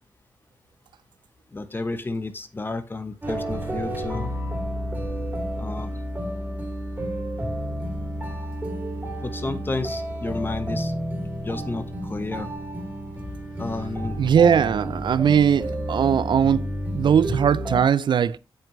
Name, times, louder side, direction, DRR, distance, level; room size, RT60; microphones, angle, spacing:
voice 1, 1.5-4.3 5.6-6.0 9.2-10.9 11.4-12.5 13.6-14.2, left 2 dB, 25° left, 1.0 m, -31 dB
sound 1, 3.2-17.8, equal, 20° right, 2.8 m, -31 dB
voice 2, 14.2-16.6 16.9-18.4, right 8 dB, 65° right, 0.4 m, -19 dB
8.6 x 6.0 x 3.1 m
cardioid pair, 95°, 9 cm